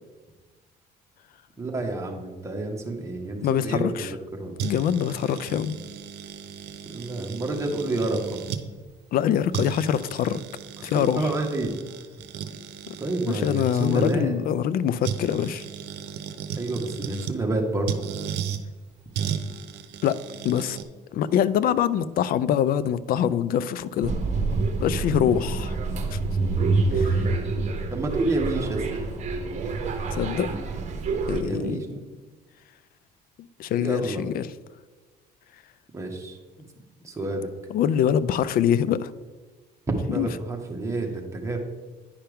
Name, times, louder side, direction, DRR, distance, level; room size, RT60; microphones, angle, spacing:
voice 1, 1.6-4.5 6.9-8.4 10.9-11.7 13.0-14.3 16.6-18.0 27.9-29.0 31.4-32.0 33.8-34.2 35.9-36.4 37.0-37.5 40.1-41.6, right 2 dB, 15° right, 1 dB, 1.4 m, -29 dB
voice 2, 3.4-4.1 4.6-5.8 9.1-10.4 10.8-11.3 13.3-15.7 20.0-20.2 20.4-20.8 21.1-24.1 24.8-25.8 26.1-26.2 26.9-27.2 30.1-30.5 31.3-31.8 33.4-34.5 37.7-39.1 40.2-40.3, left 9 dB, 60° left, 17 dB, 0.4 m, -24 dB
sound 1, 4.6-8.7 9.2-9.3 9.5-14.1 15.0-17.4 17.9-18.6 19.1-20.8, right 8 dB, 85° right, 0.7 m, -35 dB
sound 2, 24.0-31.4, right 3 dB, 45° right, 1.1 m, -27 dB
10.0 x 5.7 x 3.5 m, 1.3 s
cardioid pair, 110°, 17 cm